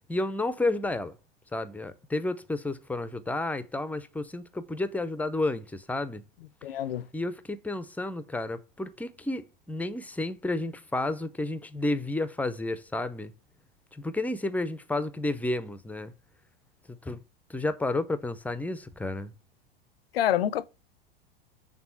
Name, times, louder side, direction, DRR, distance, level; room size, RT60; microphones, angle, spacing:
voice 1, 0.1-1.2 1.5-6.2 7.1-13.3 13.9-16.1 17.0-17.2 17.5-19.3, left 2 dB, 5° left, 0.5 m, -31 dB
voice 2, 6.6-7.1 20.1-20.6, left 11 dB, 70° left, 0.6 m, -27 dB
6.0 x 3.6 x 5.6 m
hypercardioid pair, 90°, 30 cm